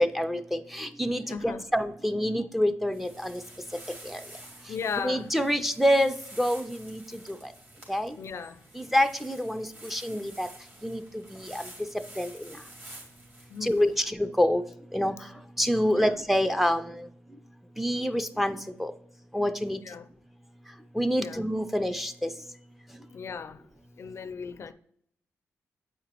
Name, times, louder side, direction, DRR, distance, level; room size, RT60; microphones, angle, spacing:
voice 1, 0.0-3.4 4.0-4.2 4.7-4.8 5.0-7.5 7.9-8.2 8.7-10.5 10.8-11.7 11.9-12.6 13.6-14.6 14.9-15.3 15.6-17.1 17.8-18.9 19.3-19.8 20.9-22.3, equal, 5° right, 0.4 m, -27 dB
voice 2, 1.3-1.6 4.7-5.3 8.2-8.6 13.5-13.9 15.9-16.1 19.8-20.1 21.2-21.4 23.1-23.6 24.0-24.7, left 6 dB, 55° left, 0.4 m, -36 dB
sound 1, 2.9-14.0, right 1 dB, 40° right, 2.8 m, -49 dB
7.9 x 5.0 x 2.9 m
cardioid pair, 90°, 5 cm